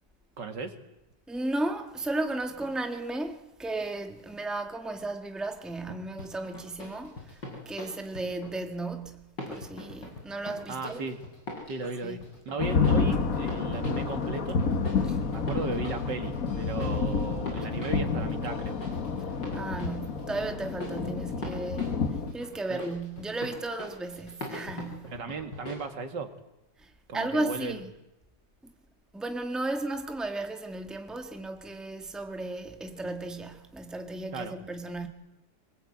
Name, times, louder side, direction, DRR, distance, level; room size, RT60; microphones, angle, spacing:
voice 1, 0.4-0.7 10.7-11.2 11.7-12.2 12.5-14.6 15.3-18.8 22.7-22.8 25.0-26.3 27.1-27.8 34.3-34.6, right 4 dB, 75° right, 2.6 m, -36 dB
voice 2, 1.3-7.4 7.7-11.1 12.0-12.3 15.0-15.2 19.5-25.2 26.8-27.9 28.6-28.7 29.1-35.1, right 2 dB, ahead, 1.6 m, -34 dB
sound 1, 6.2-8.6 9.4-25.7, left 1 dB, 80° left, 6.9 m, -43 dB
sound 2, 12.6-22.3, left 5 dB, 50° left, 1.9 m, -29 dB
25.5 x 20.0 x 8.7 m
omnidirectional pair, 1.9 m